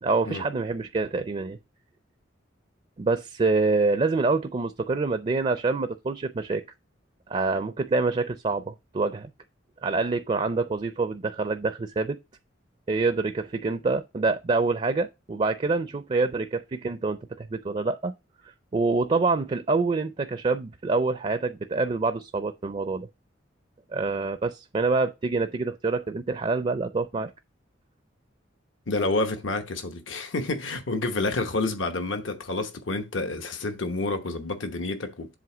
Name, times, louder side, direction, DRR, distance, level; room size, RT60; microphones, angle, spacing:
voice 1, 0.0-1.6 3.0-6.6 7.3-9.3 9.8-12.2 12.9-18.1 18.4-23.1 23.9-27.3, right 3 dB, 30° right, 0.4 m, -26 dB
voice 2, 28.9-35.4, left 2 dB, 80° left, 1.0 m, -29 dB
7.7 x 2.8 x 6.0 m
head